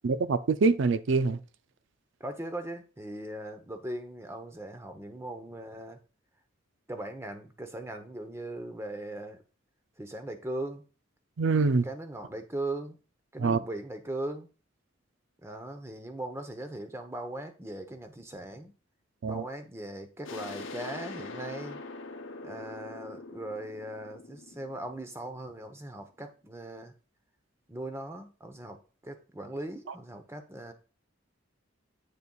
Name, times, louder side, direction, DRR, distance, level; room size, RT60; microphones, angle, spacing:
voice 1, 0.0-1.4 11.4-11.9 13.4-13.6 19.2-19.4, right 4 dB, 70° right, 0.5 m, -25 dB
voice 2, 2.2-6.0 6.9-9.4 10.0-10.8 11.8-13.0 13.3-14.5 15.4-18.7 19.2-21.8 22.4-26.9 27.7-28.8 29.0-30.7, right 1 dB, 15° right, 0.9 m, -39 dB
sound 1, 20.2-25.7, left 3 dB, 75° left, 0.9 m, -43 dB
8.4 x 6.8 x 2.3 m
head